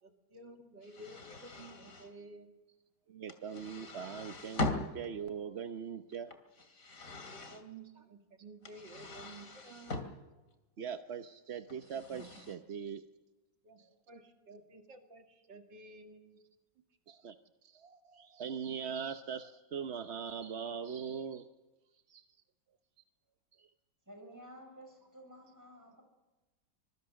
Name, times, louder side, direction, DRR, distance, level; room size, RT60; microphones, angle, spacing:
voice 1, 0.0-2.5 7.3-10.0 13.6-16.4, right 2 dB, 80° right, 4 dB, 2.9 m, -53 dB
sound 1, 0.8-2.1 3.3-5.1 6.1-7.6 8.6-10.1 11.7-12.6, left 2 dB, 50° left, 3.0 m, -41 dB
voice 2, 3.1-6.3 10.8-13.0 13.8-13.9 17.1-17.3 17.6-21.5 22.1-22.2 23.5-23.7, right 7 dB, 50° right, 8 dB, 0.9 m, -41 dB
voice 3, 24.1-26.0, equal, 10° right, 2 dB, 6.9 m, -53 dB
26.0 x 22.5 x 6.4 m, 1.1 s
omnidirectional pair, 1.9 m